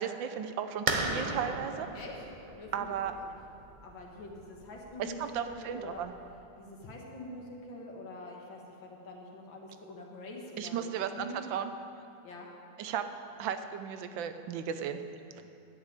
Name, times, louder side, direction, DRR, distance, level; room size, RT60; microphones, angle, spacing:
voice 1, 0.0-1.9 2.7-3.1 5.0-6.1 10.6-11.7 12.8-13.1 13.4-15.0, right 8 dB, 80° right, 9 dB, 1.4 m, -35 dB
sound 1, 0.9-6.3, right 3 dB, 45° right, 0.6 m, -37 dB
voice 2, 2.5-2.9 3.2-3.4 3.8-6.1 6.6-11.4 12.2-12.5, left 2 dB, 80° left, 0 dB, 2.4 m, -45 dB
11.5 x 6.6 x 8.8 m, 2.6 s
omnidirectional pair, 2.1 m